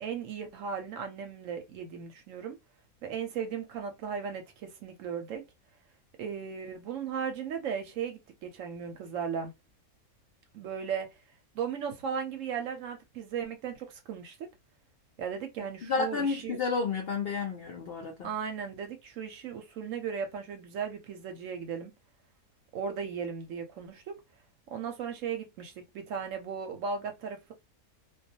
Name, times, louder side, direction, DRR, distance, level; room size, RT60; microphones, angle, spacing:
voice 1, 0.0-2.6 3.0-5.4 6.2-9.5 10.5-11.1 11.5-14.5 15.2-16.6 18.2-21.9 22.7-24.2 24.7-27.5, right 7 dB, 70° right, 0.9 m, -36 dB
voice 2, 15.8-18.3, left 5 dB, 70° left, 0.5 m, -31 dB
2.3 x 2.2 x 2.6 m
omnidirectional pair, 1.6 m